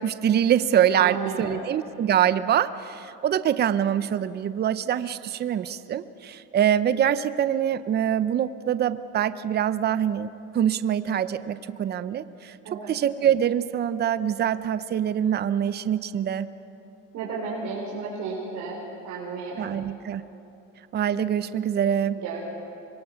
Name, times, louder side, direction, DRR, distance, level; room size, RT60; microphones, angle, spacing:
voice 1, 0.0-10.3 10.5-16.5 19.6-20.2 20.9-22.2, right 9 dB, 30° right, 13 dB, 0.7 m, -24 dB
voice 2, 0.9-1.7 12.6-12.9 17.1-18.8 19.0-19.7 22.2-22.4, right 4 dB, 55° right, -5 dB, 4.5 m, -33 dB
26.0 x 23.0 x 5.9 m, 2.8 s
cardioid pair, 125°, 34 cm